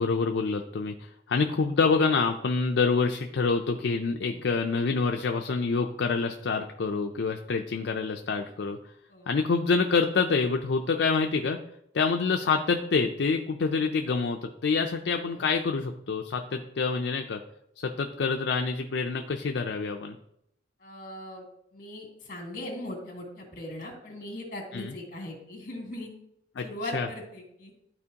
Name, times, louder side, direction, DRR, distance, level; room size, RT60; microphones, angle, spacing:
voice 1, 0.0-8.8 9.3-11.6 11.9-17.4 17.8-20.2 24.7-24.9 26.6-26.7 26.9-27.1, left 4 dB, 70° left, 4 dB, 0.4 m, -27 dB
voice 2, 15.0-15.4 20.8-21.5 21.7-26.1 26.6-27.7, left 1 dB, 50° left, 1 dB, 2.1 m, -39 dB
12.0 x 4.4 x 2.8 m, 0.79 s
head